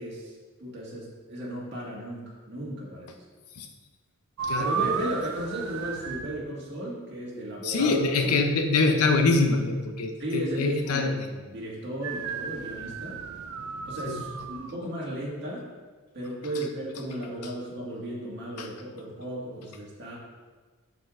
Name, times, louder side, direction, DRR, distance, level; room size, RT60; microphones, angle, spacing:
voice 1, 0.0-3.1 4.6-7.9 8.2-8.4 10.2-13.2 13.9-15.7 16.1-20.2, right 1 dB, 50° right, -5 dB, 1.8 m, -35 dB
sound 1, 4.4-6.4 12.0-14.7, right 6 dB, 70° right, 0.4 m, -33 dB
voice 2, 7.6-11.2 14.1-14.2 18.6-18.7, left 3 dB, 85° left, 6 dB, 0.6 m, -24 dB
6.5 x 6.5 x 2.5 m, 1.4 s
head